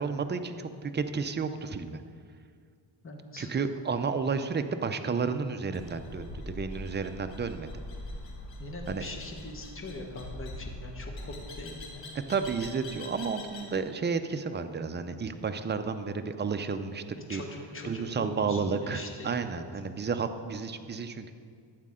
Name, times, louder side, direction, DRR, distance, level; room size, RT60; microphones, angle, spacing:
voice 1, 0.0-2.0 3.4-7.7 8.9-9.1 12.3-17.0 17.3-17.4 17.8-21.3, right 5 dB, 25° right, 8 dB, 0.5 m, -31 dB
voice 2, 3.0-3.5 8.6-12.1 17.3-19.6, left 2 dB, 25° left, 2 dB, 1.3 m, -42 dB
sound 1, 5.7-13.7, left 1 dB, 70° left, 1.9 m, -43 dB
12.0 x 8.4 x 3.7 m, 2.2 s
cardioid pair, 110°, 47 cm